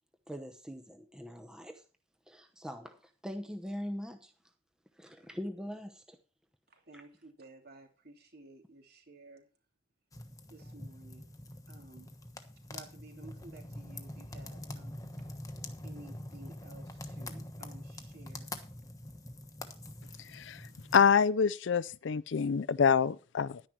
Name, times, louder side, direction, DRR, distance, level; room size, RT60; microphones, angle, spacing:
voice 1, 0.3-1.8 2.3-4.3 4.9-6.2 6.9-7.0, equal, 5° right, 0.9 m, -42 dB
voice 2, 6.7-9.5 10.5-11.3 11.7-12.1 12.7-15.3 15.8-18.5, right 2 dB, 50° right, 3.1 m, -54 dB
sound 1, 10.1-21.0, left 1 dB, 15° left, 1.2 m, -45 dB
voice 3, 20.3-20.6 20.9-23.6, left 6 dB, 60° left, 0.4 m, -26 dB
11.0 x 10.0 x 4.6 m
head